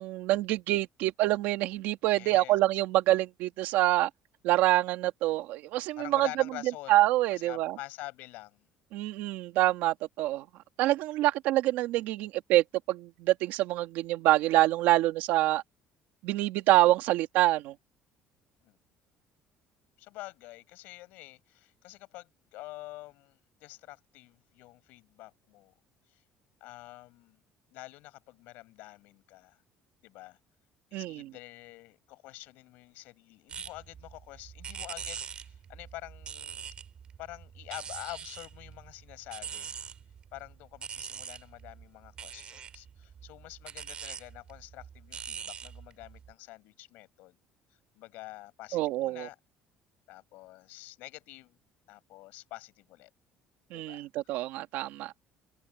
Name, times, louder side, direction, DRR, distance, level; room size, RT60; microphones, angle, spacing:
voice 1, 0.0-4.1 4.4-6.3 6.9-7.8 8.9-10.4 10.8-15.6 16.2-17.7 30.9-31.3 48.7-49.3 53.7-55.1, right 16 dB, 75° right, 2.0 m, -26 dB
voice 2, 2.1-2.6 6.0-7.0 7.3-8.7 18.6-18.8 20.0-25.7 26.1-26.2 26.6-27.4 27.7-29.6 30.0-30.4 30.9-36.6 37.2-39.8 40.3-47.4 47.9-49.4 50.1-51.6 51.9-53.1 53.7-54.1, left 19 dB, 75° left, 6.2 m, -47 dB
sound 1, 33.5-46.3, right 7 dB, 35° right, 3.3 m, -44 dB
cardioid pair, 155°, 3 cm